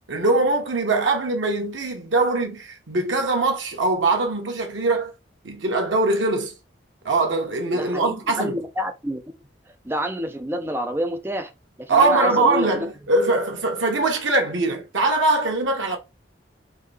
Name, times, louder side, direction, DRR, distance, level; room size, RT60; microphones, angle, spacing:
voice 1, 0.1-5.1 5.4-6.5 7.0-8.6 11.9-16.0, right 2 dB, 90° right, 1.0 m, -22 dB
voice 2, 7.7-9.2 9.8-11.5 11.8-12.7, equal, 10° right, 0.5 m, -28 dB
3.7 x 2.6 x 3.2 m
head